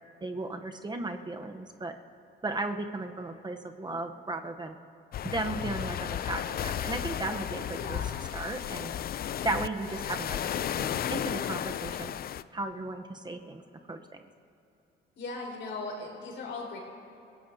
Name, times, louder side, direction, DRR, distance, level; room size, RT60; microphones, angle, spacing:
voice 1, 0.2-2.0 2.4-4.8 5.2-8.0 8.3-8.9 9.4-12.2 12.5-13.6 13.9-14.2, right 2 dB, 20° right, 6 dB, 0.9 m, -35 dB
sound 1, 5.1-12.4, left 10 dB, 50° left, 0.4 m, -34 dB
voice 2, 7.7-8.1 15.2-16.8, left 3 dB, 70° left, -2 dB, 4.4 m, -38 dB
29.0 x 17.0 x 2.8 m, 2.7 s
cardioid pair, 90°, 20 cm